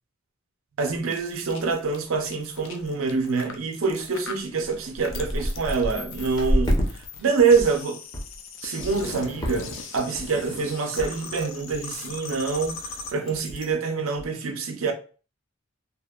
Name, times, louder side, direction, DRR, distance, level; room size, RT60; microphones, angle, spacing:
voice 1, 0.8-6.8 7.2-8.0 8.6-12.8 13.1-14.9, right 4 dB, 75° right, 0.5 m, -25 dB
sound 1, 1.0-13.7, left 4 dB, 65° left, 0.4 m, -39 dB
sound 2, 2.1-2.3 2.6-2.9 3.5-3.6 4.2-4.3 4.6-6.9 7.3-7.8 8.1-8.4 8.8-9.1 9.4-9.8 10.1-10.5 11.0-11.1 11.4-11.5 11.7-12.1 12.5-12.7 13.0-13.1 13.3-13.7 14.2-14.3, equal, 20° left, 0.6 m, -29 dB
2.8 x 2.1 x 2.3 m
head